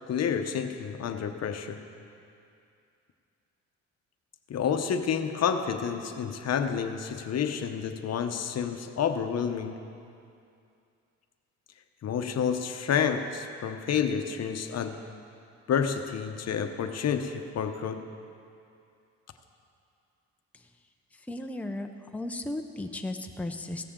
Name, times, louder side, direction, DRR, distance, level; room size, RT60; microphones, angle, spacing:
voice 1, 0.1-1.8 4.5-9.8 12.0-15.0 15.7-18.0, left 7 dB, 55° left, 7 dB, 0.9 m, -29 dB
voice 2, 21.2-23.8, left 1 dB, 5° left, 4 dB, 0.7 m, -35 dB
16.0 x 13.5 x 3.8 m, 2.5 s
cardioid pair, 90°, 30 cm